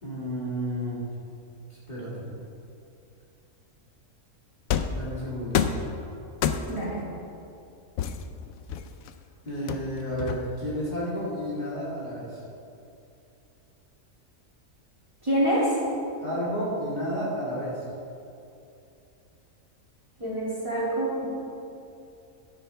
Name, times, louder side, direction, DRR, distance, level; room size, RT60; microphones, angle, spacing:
voice 1, 0.0-1.0 1.7-2.3 4.9-5.6 9.4-12.4 16.2-17.9, equal, 30° left, -7 dB, 2.1 m, -31 dB
sound 1, 4.7-5.1 5.5-5.9 6.4-6.9 8.0-9.1 9.7-10.7, left 8 dB, 80° left, 1.0 m, -28 dB
voice 2, 15.2-15.8 20.2-21.3, right 1 dB, 20° right, -8 dB, 2.5 m, -26 dB
12.0 x 10.5 x 3.3 m, 2.7 s
omnidirectional pair, 1.4 m